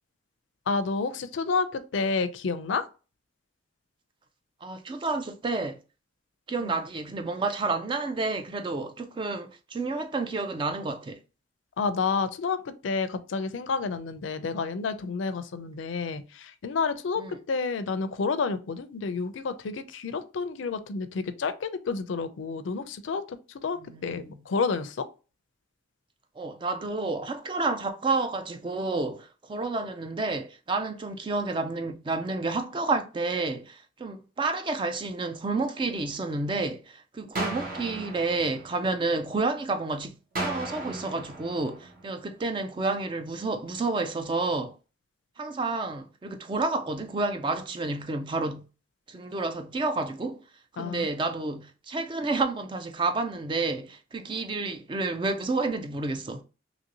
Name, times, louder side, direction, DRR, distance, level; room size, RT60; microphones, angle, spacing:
voice 1, 0.7-2.9 6.6-6.8 11.8-25.1 50.8-51.1, left 4 dB, 80° left, 0.4 m, -30 dB
voice 2, 4.6-5.8 6.5-11.2 17.2-17.4 23.8-24.4 26.4-44.7 45.4-48.6 49.1-50.4 50.8-56.4, right 3 dB, 25° right, 0.3 m, -30 dB
sound 1, 37.3-39.4 40.3-42.4, right 2 dB, 45° right, 0.9 m, -36 dB
2.9 x 2.7 x 2.8 m
head